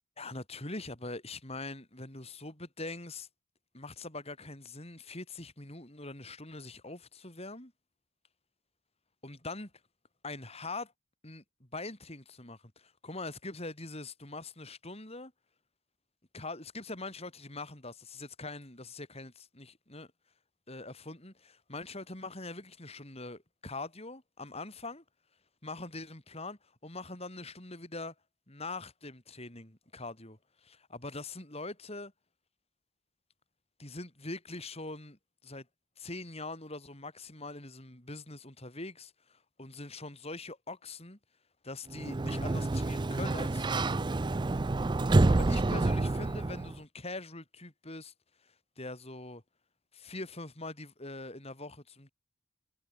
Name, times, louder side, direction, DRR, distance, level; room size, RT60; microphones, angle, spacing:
voice 1, 0.2-3.3 3.7-7.7 9.2-9.7 10.2-10.9 11.2-15.3 16.3-20.1 20.7-25.0 25.6-28.1 28.5-32.1 33.8-35.7 36.0-41.2 41.6-43.8 45.3-48.1 48.4-49.4 49.9-52.1, left 2 dB, 25° left, 4.2 m, -43 dB
Sliding door, 41.9-46.8, right 2 dB, 20° right, 0.4 m, -28 dB
head